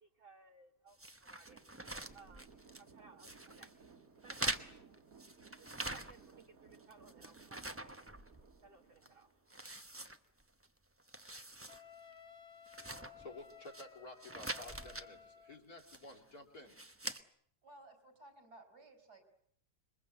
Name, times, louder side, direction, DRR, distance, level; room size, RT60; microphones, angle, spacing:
voice 1, 0.0-9.9, right 4 dB, 35° right, 4 dB, 1.4 m, -62 dB
sound 1, 1.0-2.9 3.2-3.7 4.2-6.4 6.7-8.7 9.0-9.1 9.5-10.7 11.0-11.8 12.1-12.2 12.7-13.8 14.2-15.1 15.8-16.2 16.7-17.2, right 1 dB, 10° right, 0.8 m, -44 dB
sound 2, 1.5-9.8, right 5 dB, 60° right, 2.2 m, -61 dB
Wind instrument woodwind instrument, 11.7-15.6, left 7 dB, 20° left, 1.9 m, -57 dB
voice 2, 13.2-16.8, left 2 dB, 65° left, 7 dB, 4.1 m, -52 dB
voice 3, 17.6-19.3, right 2 dB, 75° right, 6 dB, 5.1 m, -58 dB
27.0 x 23.0 x 8.0 m, 0.67 s
omnidirectional pair, 1.7 m